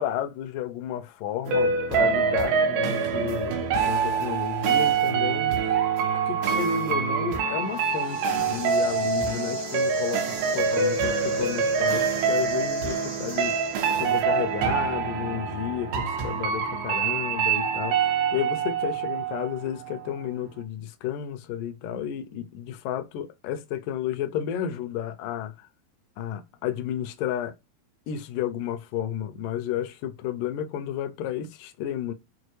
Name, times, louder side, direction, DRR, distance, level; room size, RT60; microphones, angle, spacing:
voice 1, 0.0-3.5 3.9-5.6 6.3-13.6 14.0-25.7 26.2-27.6 28.1-32.1, left 10 dB, 80° left, 2.1 m, -32 dB
sound 1, 1.5-20.1 20.4-20.5, right 5 dB, 80° right, 2.8 m, -25 dB
sound 2, 7.6-14.3, right 3 dB, 60° right, 0.7 m, -41 dB
6.4 x 2.3 x 3.0 m
omnidirectional pair, 4.2 m